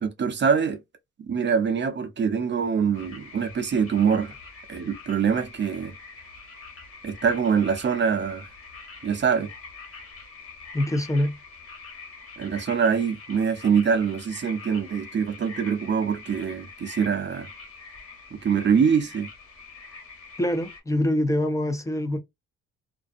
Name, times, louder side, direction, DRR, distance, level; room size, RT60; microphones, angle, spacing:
voice 1, 0.0-0.8 1.2-4.3 4.7-5.9 7.0-8.5 9.0-9.5 12.4-17.5 18.4-19.3, right 6 dB, 40° right, 0.7 m, -24 dB
sound 1, 2.9-20.8, left 4 dB, 45° left, 1.4 m, -44 dB
voice 2, 10.7-11.4 20.4-22.2, left 1 dB, 10° left, 0.6 m, -24 dB
2.5 x 2.3 x 2.4 m
cardioid pair, 90°, 30 cm